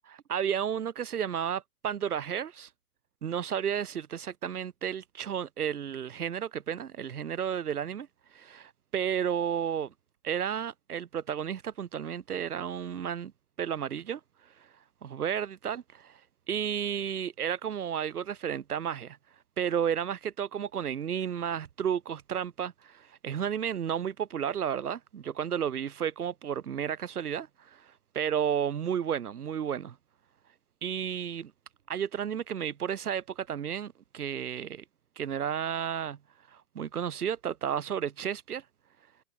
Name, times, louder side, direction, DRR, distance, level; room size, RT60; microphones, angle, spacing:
voice 1, 0.0-2.7 3.2-8.1 8.3-9.9 10.2-13.3 13.6-14.7 15.0-16.2 16.5-19.2 19.6-29.9 30.8-31.5 31.9-34.8 35.2-36.2 36.5-38.6, right 8 dB, 80° right, 4.7 m, -32 dB
hypercardioid pair, 120°, 44 cm